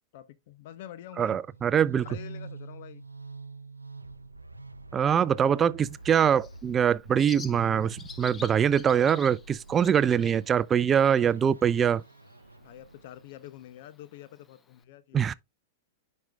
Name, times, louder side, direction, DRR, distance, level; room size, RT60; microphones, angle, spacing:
voice 1, 0.1-1.4 1.9-3.0 12.6-15.3, left 12 dB, 55° left, 0.6 m, -46 dB
voice 2, 1.2-2.1 4.9-12.0 15.1-15.3, right 8 dB, 25° right, 0.3 m, -23 dB
sound 1, 1.4-13.3, right 3 dB, 90° right, 0.5 m, -46 dB
Bird, 5.9-14.8, left 5 dB, 20° left, 0.7 m, -50 dB
10.0 x 5.3 x 2.3 m
figure-of-eight pair, 100°, 0 cm